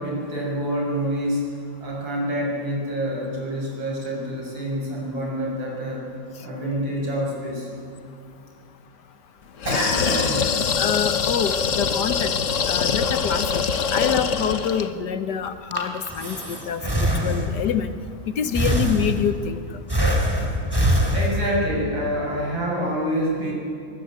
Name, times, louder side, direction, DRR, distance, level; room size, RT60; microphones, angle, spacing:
voice 1, 0.0-1.5 1.8-6.0 6.4-7.7 9.7-10.8 21.1-23.5, equal, 70° right, -2 dB, 7.4 m, -27 dB
sound 1, 9.6-14.9, left 6 dB, 45° left, 1.1 m, -24 dB
voice 2, 10.8-12.3 12.7-13.6 13.9-16.8 17.2-17.9 18.4-19.6, left 8 dB, 60° left, 11 dB, 1.4 m, -26 dB
Breathing, 15.5-17.8 18.5-19.5 19.9-21.7, equal, 10° right, 2.8 m, -23 dB
23.5 x 21.0 x 8.9 m, 2.6 s
omnidirectional pair, 2.2 m